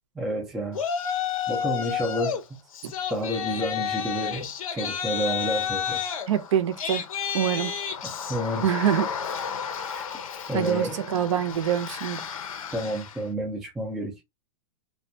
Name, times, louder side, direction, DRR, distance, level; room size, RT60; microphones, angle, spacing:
voice 1, 0.2-0.8 1.5-2.4 3.1-6.0 8.0-8.6 9.9-10.0 10.5-11.0 12.7-14.2, right 1 dB, ahead, 0.3 m, -30 dB
Yell, 0.7-2.4 2.7-13.2, left 8 dB, 90° left, 0.7 m, -31 dB
voice 2, 6.3-7.0 7.3-7.7 8.6-9.1 10.5-12.2, right 10 dB, 60° right, 0.5 m, -25 dB
2.3 x 2.2 x 2.6 m
supercardioid pair, 165°, 18 cm